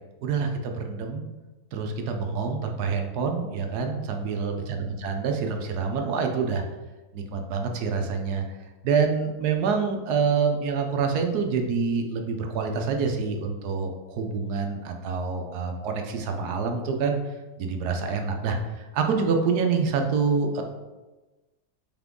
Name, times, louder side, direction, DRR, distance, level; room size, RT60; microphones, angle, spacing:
voice 1, 0.2-1.2 1.7-6.6 7.1-8.4 8.8-17.2 17.6-20.6, right 5 dB, 90° right, 4 dB, 1.3 m, -26 dB
5.9 x 4.5 x 3.7 m, 1.2 s
omnidirectional pair, 1.6 m